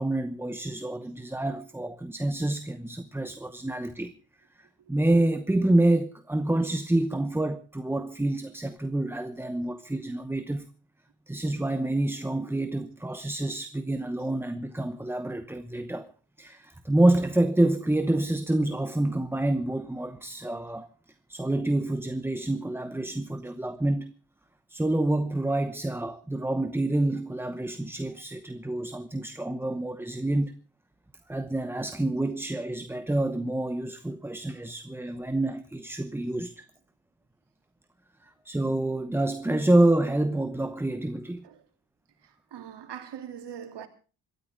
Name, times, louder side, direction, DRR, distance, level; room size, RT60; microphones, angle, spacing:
voice 1, 0.0-4.1 4.6-10.7 11.3-16.1 16.4-20.9 21.3-24.1 24.7-30.6 31.3-36.6 38.2-41.5, right 1 dB, 5° right, 0.9 m, -27 dB
voice 2, 42.5-43.9, right 9 dB, 85° right, 3.2 m, -41 dB
26.5 x 13.5 x 3.7 m
wide cardioid pair, 155°, 40 cm